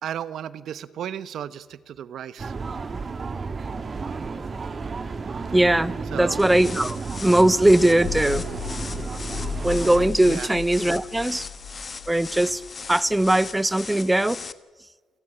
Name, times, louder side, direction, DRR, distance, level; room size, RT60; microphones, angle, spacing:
voice 1, 0.0-2.5 6.1-6.4 10.2-10.5, right 9 dB, 70° right, 1.1 m, -34 dB
sound 1, 2.4-10.1, right 4 dB, 35° right, 1.9 m, -32 dB
voice 2, 5.5-8.4 9.6-11.5 12.1-12.6 12.9-14.4, right 1 dB, 10° right, 0.7 m, -20 dB
sound 2, 6.4-14.5, left 4 dB, 35° left, 1.3 m, -38 dB
sound 3, 8.0-13.5, left 6 dB, 80° left, 8.0 m, -35 dB
29.0 x 14.5 x 9.8 m
cardioid pair, 90°, 0 cm